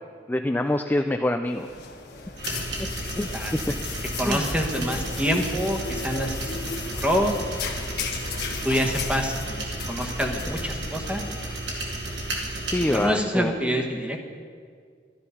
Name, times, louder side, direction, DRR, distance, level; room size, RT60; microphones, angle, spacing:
voice 1, 0.3-1.7 3.0-3.3 4.2-4.5 12.7-13.5, left 1 dB, 10° left, 6 dB, 0.3 m, -25 dB
sound 1, 1.5-11.5, left 4 dB, 60° left, 1.4 m, -35 dB
sound 2, 2.4-13.1, right 2 dB, 70° right, 2.3 m, -33 dB
voice 2, 4.2-6.5 6.9-7.5 7.8-7.9 8.6-11.2 12.9-14.2, equal, 5° right, 2 dB, 1.2 m, -26 dB
12.5 x 12.0 x 5.6 m, 2.1 s
head